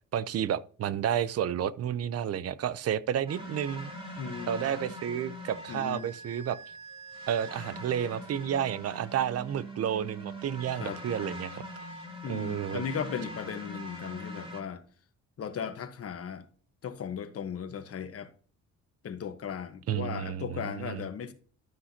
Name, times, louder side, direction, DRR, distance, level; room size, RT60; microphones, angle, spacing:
voice 1, 0.1-3.9 4.5-6.6 7.3-11.6 12.3-12.8 19.9-21.1, right 9 dB, 55° right, 0.6 m, -31 dB
sound 1, 3.3-14.6, equal, 20° right, 2.6 m, -42 dB
voice 2, 4.2-4.7 5.7-6.1 10.8-11.0 12.2-14.8 15.4-16.4 16.8-18.3 19.0-21.3, left 7 dB, 50° left, 1.2 m, -37 dB
12.5 x 5.7 x 2.8 m
cardioid pair, 90°, 30 cm